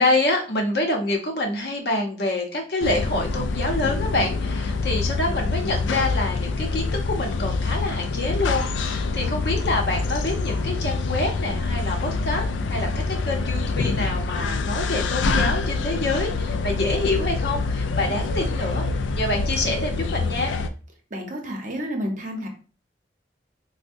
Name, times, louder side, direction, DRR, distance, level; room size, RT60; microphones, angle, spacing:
voice 1, 0.0-12.4 12.7-18.9 19.2-20.5, left 2 dB, 60° left, 1 dB, 0.7 m, -26 dB
sound 1, 2.8-20.7, left 3 dB, 90° left, 0.3 m, -26 dB
voice 2, 21.1-22.5, equal, 45° right, 2 dB, 0.7 m, -30 dB
4.4 x 2.1 x 2.5 m, 0.37 s
head